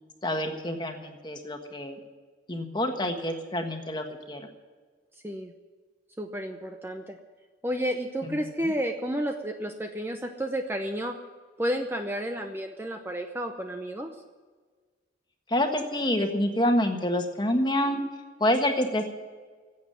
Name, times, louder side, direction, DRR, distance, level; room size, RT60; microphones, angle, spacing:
voice 1, 0.2-2.0 2.5-4.5 8.6-8.7 15.5-18.1 18.4-19.1, left 1 dB, 25° left, 5 dB, 1.5 m, -27 dB
voice 2, 6.2-7.2 7.6-11.2 11.6-14.1, equal, 10° right, 5 dB, 0.7 m, -31 dB
15.0 x 8.4 x 9.9 m, 1.5 s
head